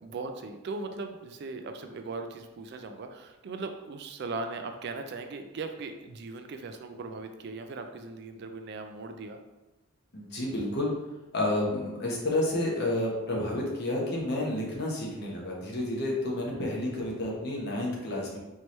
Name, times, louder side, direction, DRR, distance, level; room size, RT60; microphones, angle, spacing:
voice 1, 0.0-9.4, right 3 dB, 50° right, 6 dB, 0.3 m, -38 dB
voice 2, 10.1-10.9 11.3-18.4, left 1 dB, 50° left, -2 dB, 1.0 m, -30 dB
4.5 x 2.9 x 3.1 m, 1.0 s
head